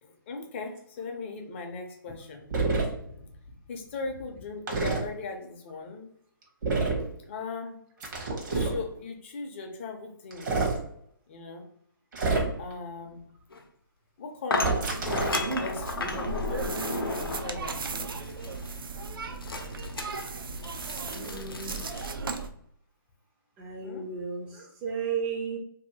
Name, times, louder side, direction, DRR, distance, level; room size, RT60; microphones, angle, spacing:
voice 1, 0.0-2.5 3.2-6.1 7.3-7.8 8.5-10.7 11.3-11.7 12.6-13.3 14.2-18.1 23.8-24.0, left 4 dB, 35° left, 3 dB, 0.5 m, -39 dB
sound 1, 2.5-2.9 4.7-5.0 6.6-7.1 8.0-8.8 10.3-10.8 12.1-12.7 14.6-15.4, right 3 dB, 55° right, 1.0 m, -27 dB
sound 2, 13.5-13.6 14.5-17.6 18.2-18.8 19.4-22.1, left 3 dB, 85° left, 0.6 m, -33 dB
sound 3, 14.8-22.5, right 3 dB, 80° right, 0.4 m, -35 dB
voice 2, 21.1-21.8 23.6-25.6, right 6 dB, 15° right, 0 dB, 0.4 m, -34 dB
2.7 x 2.7 x 2.7 m, 0.71 s
hypercardioid pair, 145°, 12 cm